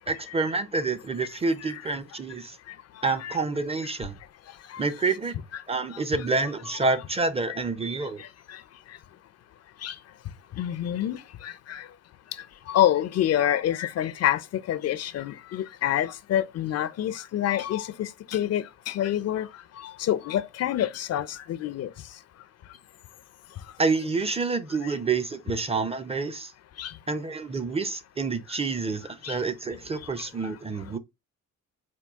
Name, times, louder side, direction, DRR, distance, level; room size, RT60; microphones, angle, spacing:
voice 1, 0.1-2.6 3.0-4.2 4.8-5.3 5.7-8.2 23.8-26.5 27.1-31.0, right 3 dB, 20° right, 0.5 m, -28 dB
voice 2, 1.6-1.9 3.1-3.4 3.8-3.9 4.7-5.1 5.5-5.6 5.9-6.3 7.5-7.6 8.2-8.6 9.8-10.0 10.6-11.9 12.7-19.5 19.8-21.9 24.8-24.9 26.8-26.9 29.2-29.4, left 11 dB, 55° left, 0.4 m, -28 dB
4.5 x 2.2 x 3.5 m
cardioid pair, 90°, 30 cm